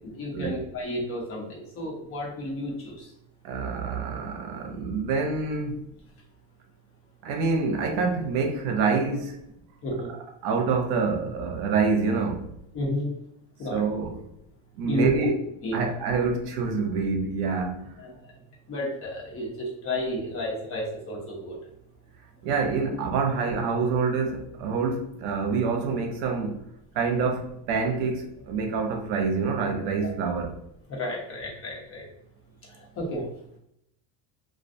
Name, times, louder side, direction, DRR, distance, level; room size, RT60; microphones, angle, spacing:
voice 1, 0.2-2.9 9.8-10.2 12.7-13.1 13.6-13.8 14.9-15.3 15.6-15.8 18.0-18.1 18.7-21.6 31.0-32.0 33.0-33.3, left 1 dB, 35° left, 0.8 m, -31 dB
voice 2, 3.4-5.8 7.2-9.4 10.4-12.5 13.7-14.2 14.8-15.3 15.7-17.8 22.4-26.6 26.9-30.5, right 4 dB, 75° right, 0.7 m, -26 dB
2.3 x 2.2 x 2.5 m
cardioid pair, 145°, 41 cm